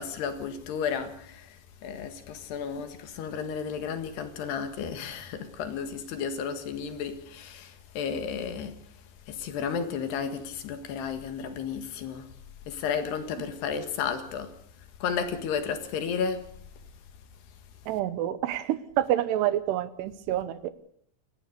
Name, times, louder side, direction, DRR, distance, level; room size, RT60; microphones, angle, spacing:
voice 1, 0.0-1.5 1.8-8.8 9.3-12.2 12.7-14.5 15.0-16.4, left 6 dB, 70° left, 3.7 m, -33 dB
voice 2, 17.9-20.7, right 12 dB, 75° right, 2.9 m, -28 dB
28.5 x 14.5 x 6.7 m
omnidirectional pair, 5.1 m